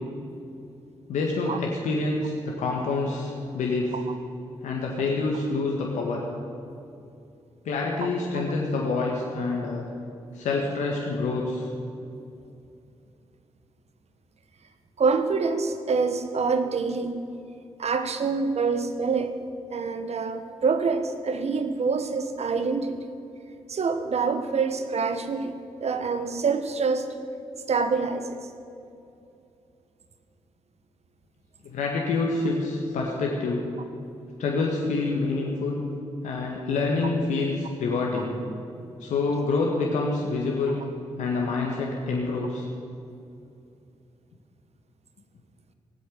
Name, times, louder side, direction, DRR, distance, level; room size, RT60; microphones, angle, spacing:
voice 1, 1.1-2.3 2.6-3.9 4.6-6.2 7.6-9.8 10.3-11.7 31.6-33.7 34.4-35.8 36.2-38.4 39.0-40.8 41.2-42.6, left 3 dB, 80° left, -1 dB, 1.7 m, -27 dB
voice 2, 15.0-17.2 17.8-19.4 19.7-23.0 23.7-27.1 27.7-28.4, right 4 dB, 60° right, 9 dB, 1.5 m, -26 dB
17.5 x 8.1 x 9.4 m, 2.6 s
hypercardioid pair, 40°, 12 cm